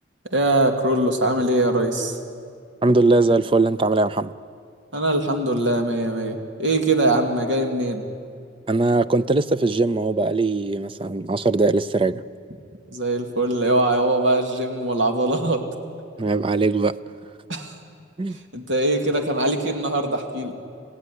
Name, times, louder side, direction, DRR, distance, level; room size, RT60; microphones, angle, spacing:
voice 1, 0.2-2.2 4.9-8.0 12.9-15.7 17.5-17.8 18.3-20.6, right 2 dB, 75° right, 5 dB, 2.4 m, -22 dB
voice 2, 2.8-4.3 8.7-12.2 16.2-16.9 18.2-18.4, right 3 dB, 30° right, 14 dB, 0.5 m, -20 dB
27.5 x 16.0 x 9.9 m, 2.3 s
head